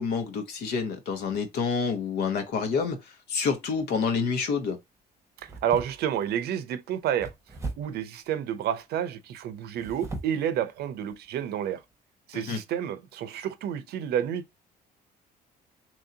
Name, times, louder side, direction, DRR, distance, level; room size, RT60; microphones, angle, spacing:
voice 1, 0.0-4.8 12.3-12.6, left 5 dB, 70° left, 1.1 m, -28 dB
sound 1, 5.4-6.3 7.2-8.1 9.6-10.5 11.0-11.1 11.7-11.8, right 3 dB, 20° right, 0.9 m, -39 dB
voice 2, 5.4-7.3 7.8-11.8 12.3-14.6, right 9 dB, 70° right, 0.6 m, -30 dB
3.1 x 2.8 x 3.8 m
cardioid pair, 110°, 17 cm